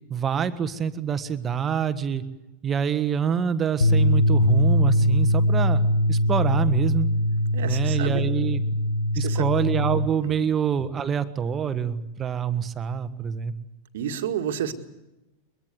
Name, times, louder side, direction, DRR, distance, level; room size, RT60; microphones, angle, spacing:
voice 1, 0.1-2.2 2.6-7.1 7.6-8.6 9.1-13.5, right 7 dB, 25° right, 13 dB, 1.5 m, -26 dB
sound 1, 3.8-10.1, equal, 70° left, 1.4 m, -21 dB
voice 2, 7.5-8.3 9.1-9.5 13.9-14.7, right 9 dB, 55° right, 8 dB, 1.9 m, -30 dB
22.5 x 22.5 x 7.9 m, 0.97 s
figure-of-eight pair, 90°, 0 cm